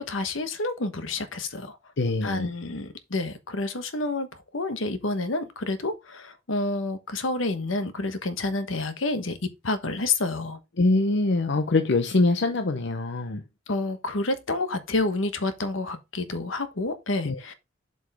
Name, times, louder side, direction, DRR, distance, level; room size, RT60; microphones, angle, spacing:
voice 1, 0.0-1.8 2.2-9.4 9.6-10.6 13.7-17.5, left 2 dB, 80° left, 1.2 m, -29 dB
voice 2, 2.0-2.5 10.8-13.4 17.2-17.5, left 2 dB, 65° left, 0.7 m, -24 dB
7.6 x 5.2 x 3.5 m
head